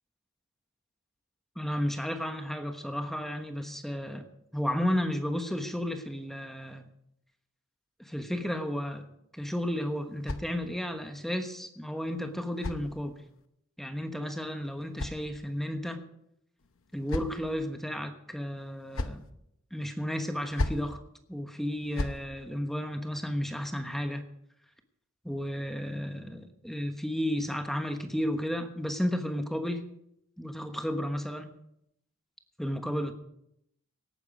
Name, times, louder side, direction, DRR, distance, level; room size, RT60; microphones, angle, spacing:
voice 1, 1.6-4.2 4.5-6.8 8.0-9.1 9.3-13.2 13.8-16.0 16.9-19.2 19.7-21.0 21.3-24.2 25.2-29.8 30.4-31.5 32.6-33.1, equal, ahead, 6 dB, 1.2 m, -33 dB
sound 1, 9.4-11.0 12.0-13.4 14.4-15.8 16.6-17.6 18.6-19.3 20.3-20.9 21.7-22.2, left 2 dB, 65° left, 0.9 m, -38 dB
17.5 x 9.5 x 5.1 m, 0.76 s
head